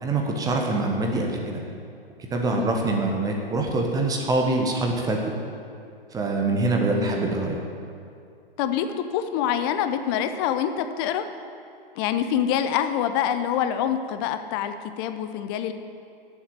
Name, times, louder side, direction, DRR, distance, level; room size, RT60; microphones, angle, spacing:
voice 1, 0.0-1.6 2.3-5.2 6.1-7.6, right 2 dB, 10° right, 1 dB, 1.2 m, -24 dB
voice 2, 6.9-7.2 8.6-8.9 9.1-11.3 12.0-15.7, left 9 dB, 25° left, 9 dB, 0.5 m, -26 dB
8.7 x 7.3 x 8.9 m, 2.4 s
figure-of-eight pair, 115°, 29 cm